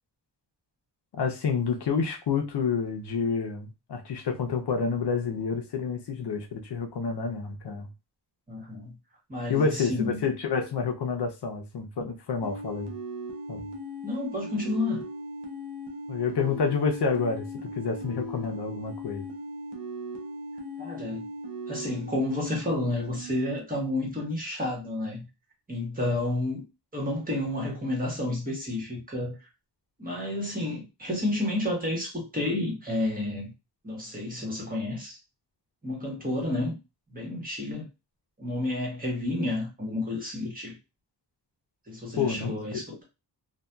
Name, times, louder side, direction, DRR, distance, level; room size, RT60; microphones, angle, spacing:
voice 1, 1.1-7.9 9.5-12.9 13.5-13.6 16.1-19.3 42.2-42.8, left 5 dB, 70° left, 0.6 m, -29 dB
voice 2, 8.5-9.0 9.3-10.2 14.0-15.0 20.8-21.3 21.7-25.2 25.7-26.6 26.9-29.3 30.0-33.5 33.8-35.2 35.8-36.8 37.1-37.9 38.4-40.7 41.9-43.0, left 1 dB, 20° right, 1.0 m, -30 dB
sound 1, 12.4-23.6, equal, 70° right, 0.7 m, -38 dB
2.7 x 2.2 x 2.2 m
wide cardioid pair, 115°, 42 cm